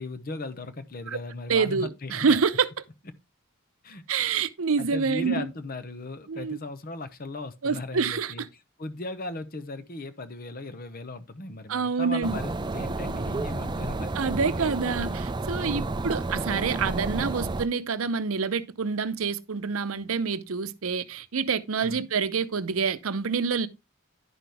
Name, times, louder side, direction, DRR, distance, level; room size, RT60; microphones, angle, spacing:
voice 1, 0.0-2.4 3.8-4.0 4.8-8.5 8.8-14.3 15.5-15.9 21.8-22.0, left 2 dB, 45° left, 0.9 m, -37 dB
voice 2, 1.5-2.7 4.1-5.4 6.3-6.6 7.6-8.3 11.7-12.4 14.1-23.7, right 5 dB, 80° right, 0.7 m, -27 dB
sound 1, 12.2-17.7, right 2 dB, 20° right, 0.4 m, -31 dB
11.0 x 6.0 x 3.4 m
head